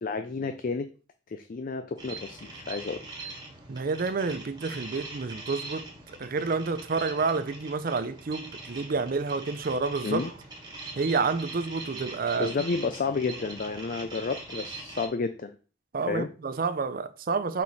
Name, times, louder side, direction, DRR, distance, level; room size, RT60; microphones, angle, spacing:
voice 1, 0.0-0.9 1.3-3.0 10.0-10.3 12.4-15.5 16.1-16.3, left 4 dB, 45° left, 0.4 m, -31 dB
sound 1, 2.0-15.1, right 3 dB, 20° right, 1.4 m, -42 dB
voice 2, 3.7-10.3 11.0-12.5 15.9-17.6, right 4 dB, 45° right, 0.5 m, -29 dB
5.5 x 4.8 x 4.0 m
head